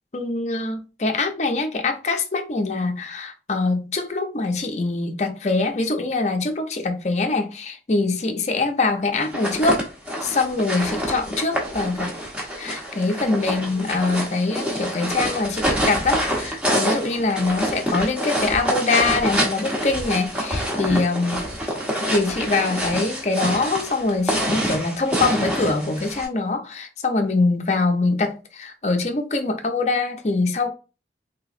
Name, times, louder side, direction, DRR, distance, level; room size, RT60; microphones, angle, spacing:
voice 1, 0.1-9.9 10.2-12.1 12.6-21.5 22.1-30.7, left 3 dB, 40° left, 0.5 m, -23 dB
sound 1, 9.2-26.3, equal, 5° right, 0.8 m, -26 dB
3.4 x 3.0 x 2.4 m
head